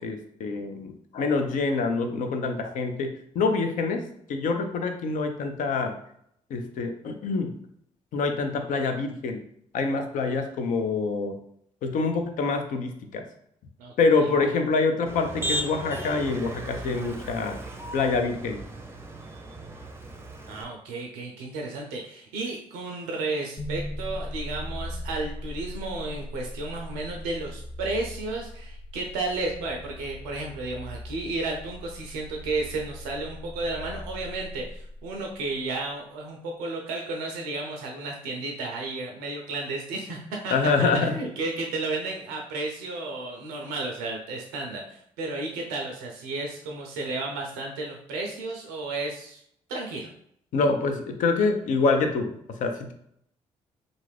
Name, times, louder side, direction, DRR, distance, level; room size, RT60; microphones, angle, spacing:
voice 1, 0.0-6.0 6.5-7.5 8.1-9.4 9.7-11.4 11.8-13.2 14.0-17.6 17.9-18.6 40.5-41.2 50.5-52.9, left 4 dB, 65° left, 6 dB, 0.5 m, -26 dB
Motor vehicle (road), 15.1-20.6, right 1 dB, 15° right, 0.6 m, -36 dB
voice 2, 20.5-40.5 40.8-49.4 49.7-50.1, right 2 dB, 80° right, 1 dB, 0.5 m, -33 dB
sound 1, 23.6-35.6, left 1 dB, 25° left, 0.6 m, -39 dB
2.5 x 2.4 x 3.2 m, 0.69 s
hypercardioid pair, 50°, 15 cm